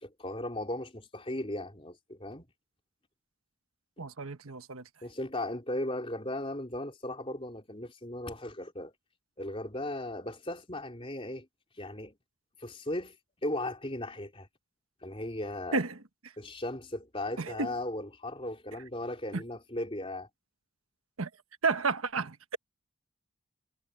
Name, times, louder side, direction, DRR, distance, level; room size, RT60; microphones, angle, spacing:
voice 1, 0.0-2.5 4.0-4.1 5.0-8.9 9.4-11.5 11.8-12.1 12.6-14.5 15.0-15.8 16.4-20.3, left 1 dB, 25° left, 3.6 m, -37 dB
voice 2, 4.0-4.9 15.7-16.0 17.4-17.7 19.3-19.4 21.2-21.3 21.6-22.6, right 4 dB, 90° right, 1.3 m, -31 dB
head